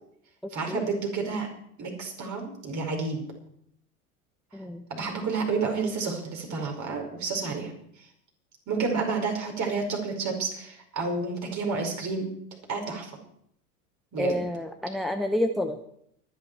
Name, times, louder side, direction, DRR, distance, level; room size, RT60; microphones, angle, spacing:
voice 1, 0.5-1.5 1.8-3.2 4.9-7.7 8.0-8.1 8.7-12.3 12.7-13.1 14.1-14.4, right 4 dB, 35° right, 2 dB, 5.1 m, -30 dB
voice 2, 4.5-4.8 14.2-15.9, left 1 dB, ahead, 8 dB, 0.9 m, -29 dB
24.0 x 10.0 x 4.7 m, 0.70 s
figure-of-eight pair, 80°, 46 cm